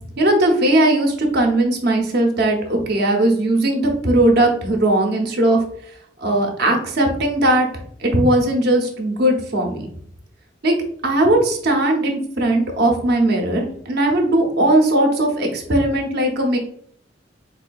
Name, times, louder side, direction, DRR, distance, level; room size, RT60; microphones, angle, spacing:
voice 1, 0.2-5.6 6.2-7.7 8.0-9.9 10.6-10.7 11.0-16.6, right 1 dB, 60° right, 2 dB, 0.8 m, -18 dB
4.6 x 2.6 x 2.3 m, 0.62 s
head